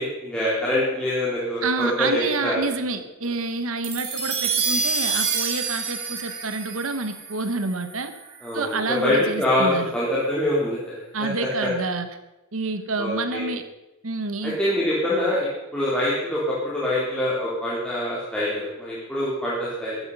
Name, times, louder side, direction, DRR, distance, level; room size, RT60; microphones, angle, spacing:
voice 1, 0.0-2.6 8.4-10.9 11.2-11.3 13.0-13.5 14.4-15.5 15.7-20.0, left 1 dB, 5° left, -8 dB, 3.7 m, -24 dB
voice 2, 1.6-8.1 8.5-9.9 11.1-12.1 12.5-13.6 14.0-14.6, right 3 dB, 70° right, 10 dB, 1.2 m, -28 dB
sound 1, 3.8-8.4, right 5 dB, 85° right, 4.0 m, -28 dB
14.5 x 14.0 x 5.5 m, 0.99 s
head